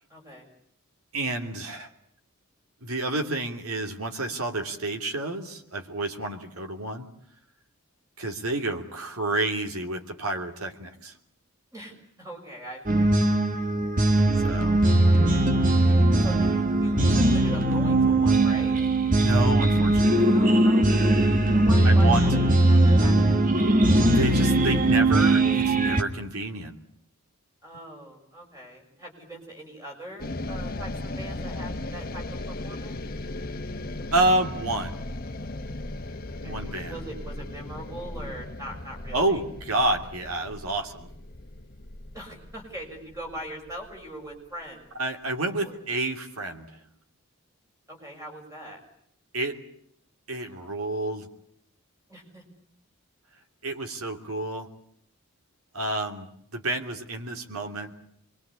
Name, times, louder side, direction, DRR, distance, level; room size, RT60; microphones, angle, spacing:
voice 1, 0.1-0.5 11.7-13.2 14.4-15.0 16.2-18.7 20.2-22.4 22.7-23.5 27.6-32.9 36.3-39.4 42.1-44.9 45.6-45.8 47.9-48.8 52.1-52.4, right 1 dB, 15° right, 0 dB, 6.6 m, -42 dB
voice 2, 1.1-1.9 2.8-7.0 8.2-11.1 14.4-14.8 19.1-20.3 21.8-22.2 24.1-26.7 34.1-35.0 36.4-37.0 39.1-41.1 45.0-46.8 49.3-49.6 50.3-51.3 53.6-54.7 55.7-57.9, right 2 dB, 80° right, 4 dB, 3.0 m, -29 dB
sound 1, 12.9-26.0, right 1 dB, 35° right, 1.5 m, -20 dB
sound 2, 30.2-44.5, left 2 dB, 40° left, 1.3 m, -37 dB
26.0 x 22.5 x 8.4 m, 0.69 s
head